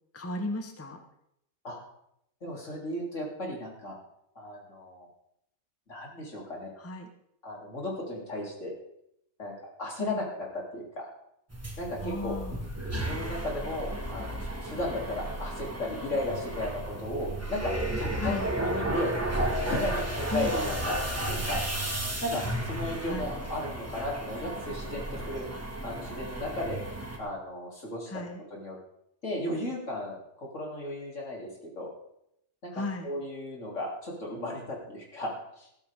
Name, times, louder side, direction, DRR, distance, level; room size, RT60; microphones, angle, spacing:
voice 1, 0.1-1.0 6.8-7.1 10.0-10.2 12.0-12.7 18.2-18.5 20.3-20.5 23.0-23.3 28.1-28.4 32.7-33.1, left 1 dB, 10° left, 5 dB, 0.9 m, -35 dB
voice 2, 2.4-4.0 4.4-5.1 5.9-6.7 7.4-8.7 9.4-9.5 9.8-11.1 11.8-12.4 12.9-17.7 18.0-19.2 19.6-20.9 21.3-21.6 22.2-25.5 25.8-26.8 27.2-28.1 28.5-28.8 29.2-31.9 32.6-35.7, left 1 dB, 70° left, -2 dB, 3.6 m, -35 dB
sound 1, 11.5-27.2, right 1 dB, 10° right, 1.8 m, -33 dB
14.5 x 13.5 x 3.6 m, 0.77 s
omnidirectional pair, 1.3 m